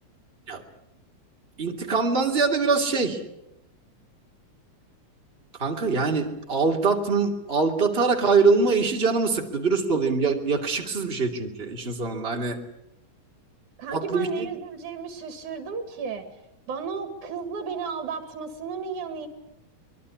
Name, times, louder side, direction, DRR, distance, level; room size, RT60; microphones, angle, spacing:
voice 1, 1.6-3.2 5.6-12.6 13.9-14.5, right 4 dB, 20° right, 2 dB, 2.8 m, -23 dB
voice 2, 13.8-16.3 16.7-19.3, right 5 dB, 90° right, 8 dB, 3.7 m, -33 dB
24.0 x 22.5 x 8.6 m, 0.85 s
omnidirectional pair, 3.4 m